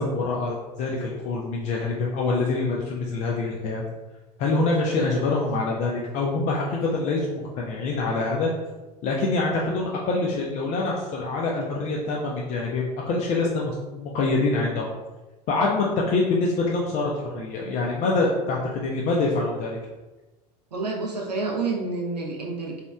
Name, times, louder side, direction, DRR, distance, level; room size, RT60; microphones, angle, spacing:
voice 1, 0.0-3.8 4.4-8.5 9.0-14.9 15.5-19.8, left 3 dB, 35° left, -2 dB, 0.4 m, -25 dB
voice 2, 20.7-22.8, right 3 dB, 80° right, 0 dB, 0.6 m, -29 dB
2.9 x 2.3 x 2.2 m, 1.1 s
figure-of-eight pair, 75°, 21 cm